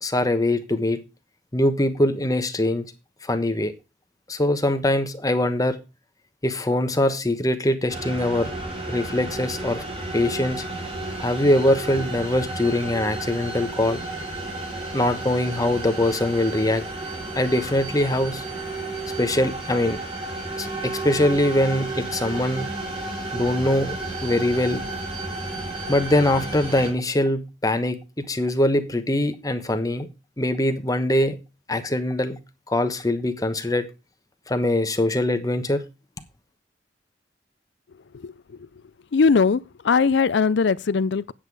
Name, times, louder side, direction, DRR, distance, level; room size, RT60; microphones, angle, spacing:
voice 1, 0.0-1.0 1.5-2.9 3.2-3.7 4.3-5.8 6.4-8.5 8.9-9.8 10.1-10.6 11.2-14.0 14.9-16.8 17.3-18.4 19.2-20.0 20.6-22.7 23.3-24.0 24.2-24.8 25.9-30.1 30.4-31.4 31.7-32.4 32.7-33.8 34.5-35.8, left 1 dB, 20° left, 1.2 m, -22 dB
sound 1, 7.9-26.9, right 2 dB, 30° right, 4.0 m, -32 dB
voice 2, 39.1-41.3, left 5 dB, 70° left, 0.5 m, -20 dB
8.9 x 8.2 x 4.8 m
head